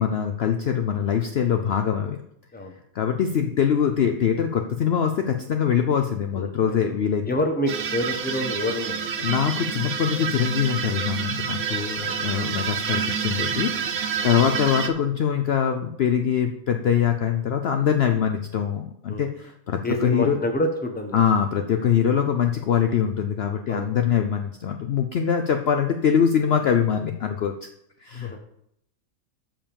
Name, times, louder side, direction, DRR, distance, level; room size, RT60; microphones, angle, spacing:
voice 1, 0.0-2.2 2.9-7.2 9.2-13.7 14.2-20.4 21.1-27.5 28.0-28.3, left 8 dB, 55° left, 6 dB, 0.7 m, -23 dB
voice 2, 6.3-6.8 7.3-9.1 11.6-12.6 14.2-14.3 19.1-19.3 19.8-21.2 23.7-23.9 28.2-28.4, left 1 dB, 5° left, 4 dB, 0.9 m, -28 dB
sound 1, 7.7-14.9, right 7 dB, 65° right, 1.1 m, -28 dB
7.1 x 5.6 x 6.9 m, 0.74 s
omnidirectional pair, 1.5 m